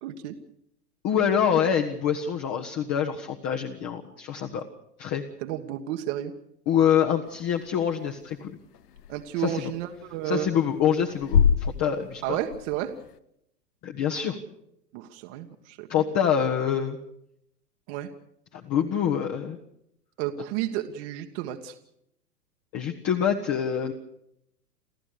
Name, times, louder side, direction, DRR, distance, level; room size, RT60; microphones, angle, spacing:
voice 1, 0.0-0.3 5.4-6.3 9.1-10.5 12.2-12.9 14.9-15.9 17.9-18.1 20.2-21.8, right 12 dB, 45° right, 5 dB, 1.5 m, -32 dB
voice 2, 1.0-4.6 5.0-5.2 6.7-8.5 9.4-9.7 10.2-12.4 13.8-14.4 15.9-17.0 18.5-19.6 22.7-23.9, left 8 dB, 30° left, 2 dB, 1.5 m, -25 dB
sound 1, 7.3-13.2, left 7 dB, 70° left, 1.3 m, -29 dB
29.5 x 13.5 x 6.8 m, 0.76 s
hypercardioid pair, 115°, 48 cm